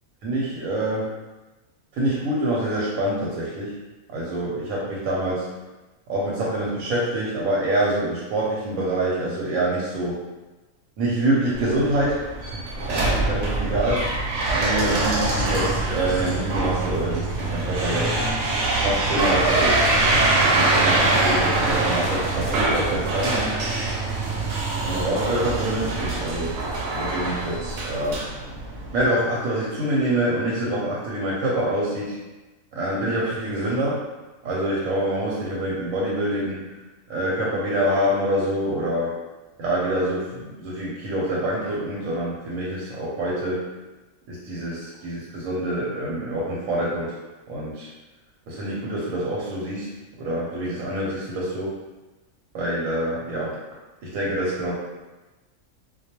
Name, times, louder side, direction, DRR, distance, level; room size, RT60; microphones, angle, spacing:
voice 1, 0.2-1.1 1.9-3.7 4.1-5.5 6.1-10.2 11.0-14.1 14.5-18.2 18.8-19.9 20.5-23.4 24.9-26.6 26.9-28.2 28.9-32.2 32.7-34.0 34.4-36.6 37.1-39.2 39.6-43.6 44.3-47.1 47.5-47.9 48.5-49.9 50.2-51.7 52.5-53.6 54.0-54.7, right 1 dB, 85° right, -5 dB, 1.0 m, -26 dB
sound 1, 11.5-29.0, right 2 dB, 70° right, 0.8 m, -24 dB
2.2 x 2.2 x 2.8 m, 1.1 s
omnidirectional pair, 1.4 m